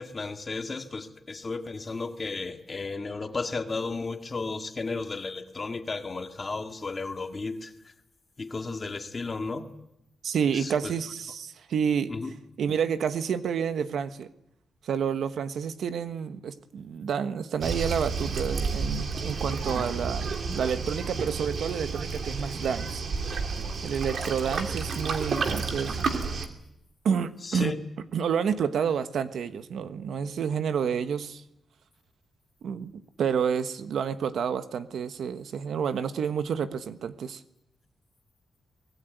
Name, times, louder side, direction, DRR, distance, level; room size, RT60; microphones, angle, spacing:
voice 1, 0.0-7.7 8.4-9.7 10.5-10.9 12.1-12.3 27.4-27.9, left 3 dB, 30° left, 5 dB, 2.0 m, -34 dB
voice 2, 10.2-12.1 12.6-14.3 14.8-23.0 23.8-26.0 27.0-27.7 28.1-31.4 32.6-32.9 33.2-37.4, right 7 dB, 75° right, 10 dB, 1.3 m, -29 dB
Waves surf, 17.6-26.5, right 4 dB, 55° right, 2.9 m, -31 dB
24.5 x 20.0 x 9.3 m, 0.83 s
wide cardioid pair, 150°, 0 cm